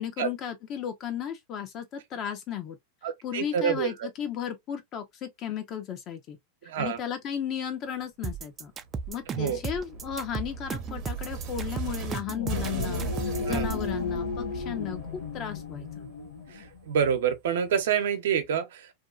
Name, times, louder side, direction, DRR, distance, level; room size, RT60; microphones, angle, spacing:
voice 1, 0.0-2.8 3.2-6.4 6.8-8.7 9.1-13.0 13.4-15.9, left 9 dB, 40° left, 0.8 m, -35 dB
voice 2, 3.0-4.1 6.6-7.0 9.3-9.6 13.4-13.7 16.5-18.9, right 8 dB, 80° right, 0.7 m, -27 dB
sound 1, 8.2-13.9, right 5 dB, 25° right, 0.4 m, -35 dB
sound 2, 8.8-12.2 12.5-17.2, right 5 dB, 40° right, 0.8 m, -38 dB
sound 3, 12.2-16.8, left 6 dB, 90° left, 0.7 m, -35 dB
2.6 x 2.3 x 2.4 m
hypercardioid pair, 120°, 0 cm